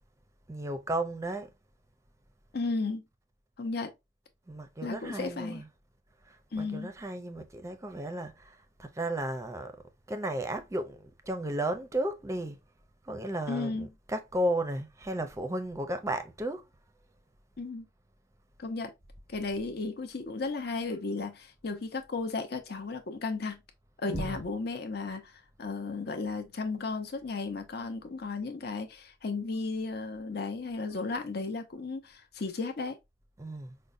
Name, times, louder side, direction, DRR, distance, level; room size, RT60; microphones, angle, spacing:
voice 1, 0.5-1.5 4.5-5.7 6.3-9.8 10.1-12.6 13.0-16.6 24.1-24.4 33.4-33.8, right 1 dB, 15° right, 0.5 m, -34 dB
voice 2, 2.5-3.0 3.6-3.9 4.8-5.6 6.5-6.9 13.5-13.9 17.6-17.9 18.6-18.9 19.3-23.6 24.0-33.0, left 3 dB, 60° left, 0.7 m, -34 dB
5.1 x 2.1 x 2.5 m
head